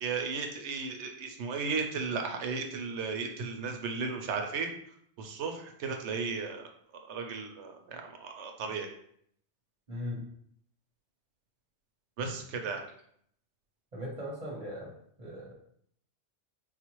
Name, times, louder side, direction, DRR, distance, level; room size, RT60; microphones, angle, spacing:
voice 1, 0.0-4.7 5.2-6.7 7.1-8.9 12.2-12.8, right 4 dB, 85° right, 4 dB, 0.9 m, -35 dB
voice 2, 9.9-10.3 13.9-14.9 15.2-15.5, left 1 dB, 35° right, -5 dB, 1.0 m, -38 dB
4.0 x 2.4 x 3.0 m, 0.66 s
omnidirectional pair, 1.1 m